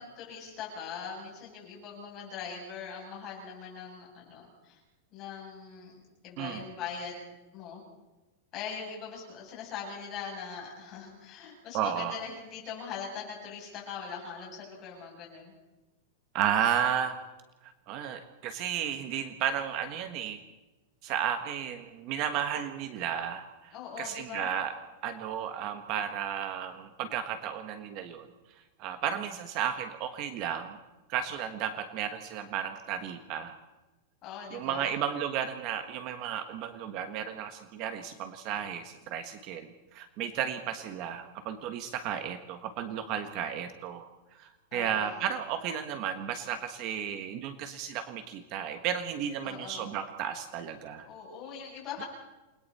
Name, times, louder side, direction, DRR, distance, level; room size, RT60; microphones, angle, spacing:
voice 1, 0.0-4.8 5.1-7.8 8.5-15.5 23.7-24.5 34.2-34.9 44.7-45.3 49.4-49.9 51.0-52.0, left 6 dB, 25° left, -2 dB, 7.9 m, -41 dB
voice 2, 11.7-12.2 16.3-17.2 17.6-20.4 21.0-24.7 25.0-28.3 28.8-30.8 31.1-33.6 34.5-44.0 44.3-51.1, right 9 dB, 30° right, 8 dB, 1.3 m, -33 dB
29.0 x 21.0 x 4.3 m, 1.1 s
supercardioid pair, 180°, 0 cm